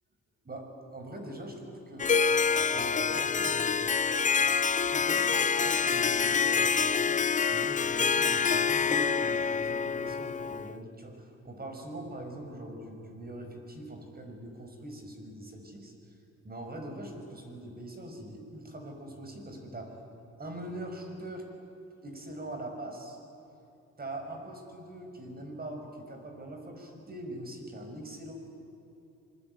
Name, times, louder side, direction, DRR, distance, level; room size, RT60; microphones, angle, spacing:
voice 1, 0.4-2.1 2.5-3.8 4.9-7.1 7.5-15.9 16.4-20.0 20.4-21.5 22.0-23.2 24.0-28.3, right 1 dB, 30° right, 3 dB, 5.9 m, -42 dB
Harp, 2.0-10.7, left 6 dB, 25° left, 0.5 m, -27 dB
25.5 x 21.5 x 9.6 m, 2.9 s
cardioid pair, 90°, 30 cm